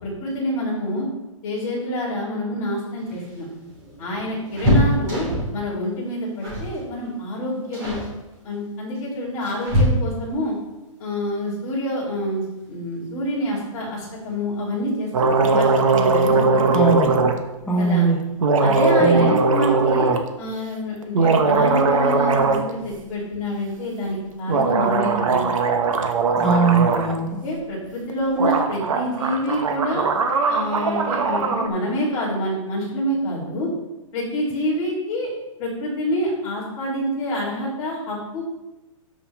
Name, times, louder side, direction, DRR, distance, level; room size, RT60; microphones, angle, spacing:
voice 1, 0.0-1.1 1.4-3.5 4.0-8.0 8.4-10.5 11.0-16.8 17.8-18.1 18.6-20.1 20.4-25.4 26.9-27.0 27.4-30.0 30.5-33.7 34.1-35.3 35.6-38.4, equal, 20° left, -7 dB, 3.0 m, -27 dB
sound 1, 2.9-5.6 6.4-6.8 7.0-7.3 7.7-8.1 8.9-10.4 12.1-12.2 12.6-12.7 13.9-14.3 14.6-14.7 15.0-15.2, equal, 20° right, 3.0 m, -24 dB
sound 2, 15.1-17.3 18.4-20.2 21.0-22.7 22.9-23.0 24.5-27.1 28.1-28.2 28.4-31.7, right 4 dB, 70° right, 1.2 m, -20 dB
voice 2, 16.7-17.1 17.7-18.2 19.0-19.4 26.4-27.4, right 4 dB, ahead, -6 dB, 0.4 m, -20 dB
13.0 x 5.6 x 3.5 m, 1.0 s
hypercardioid pair, 175°, 18 cm